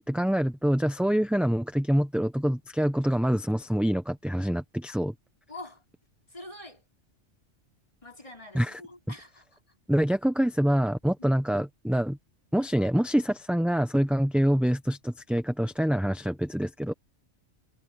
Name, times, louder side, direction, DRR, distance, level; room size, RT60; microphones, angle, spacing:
voice 1, 0.0-5.1 8.5-8.8 9.9-12.2 12.5-16.9, equal, ahead, 0.9 m, -25 dB
voice 2, 5.5-5.8 6.3-6.9 8.0-9.6 11.2-11.4, left 2 dB, 25° left, 5.4 m, -45 dB
omnidirectional pair, 1.2 m